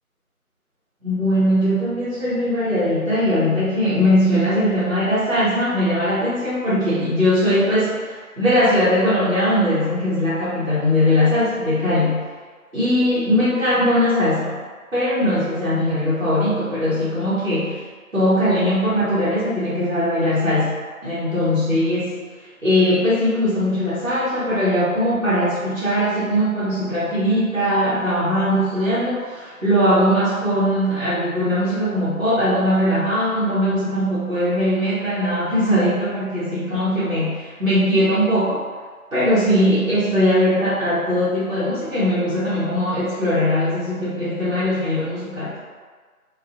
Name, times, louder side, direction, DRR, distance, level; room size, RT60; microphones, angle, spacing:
voice 1, 1.0-12.3 12.7-14.6 14.9-17.8 18.1-22.2 22.6-38.6 39.1-45.6, equal, 55° right, -12 dB, 0.9 m, -20 dB
2.4 x 2.2 x 2.5 m, 1.5 s
figure-of-eight pair, 175°, 44 cm